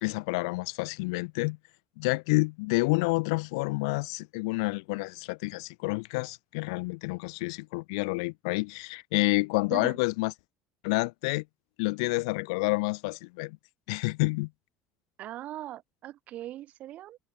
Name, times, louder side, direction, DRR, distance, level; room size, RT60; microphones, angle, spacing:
voice 1, 0.0-1.6 2.0-10.3 10.8-11.4 11.8-13.6 13.9-14.5, left 27 dB, 90° left, 1.6 m, -29 dB
voice 2, 15.2-17.2, right 13 dB, 55° right, 5.2 m, -40 dB
supercardioid pair, 115°, 3 cm